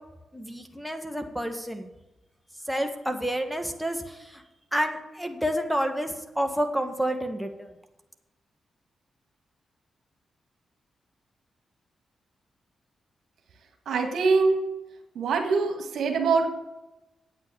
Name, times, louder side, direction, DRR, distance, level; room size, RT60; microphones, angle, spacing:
voice 1, 0.3-1.9 2.7-4.4 4.7-7.7, equal, 5° right, 4 dB, 1.8 m, -29 dB
voice 2, 13.9-14.7 15.2-16.6, right 4 dB, 75° right, 3 dB, 1.8 m, -24 dB
9.0 x 8.2 x 7.1 m, 1.0 s
supercardioid pair, 45°, 0 cm